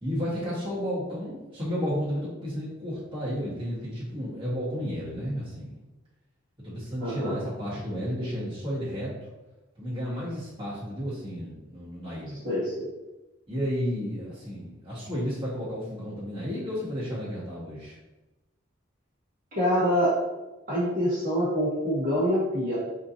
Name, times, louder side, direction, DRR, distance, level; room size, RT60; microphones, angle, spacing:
voice 1, 0.0-5.7 6.6-9.1 9.8-12.4 13.5-18.0, equal, 25° right, -10 dB, 1.5 m, -32 dB
voice 2, 7.0-7.4 12.4-12.9 19.5-20.1 20.7-22.8, equal, 45° right, -8 dB, 1.4 m, -25 dB
4.3 x 2.8 x 2.7 m, 1.1 s
head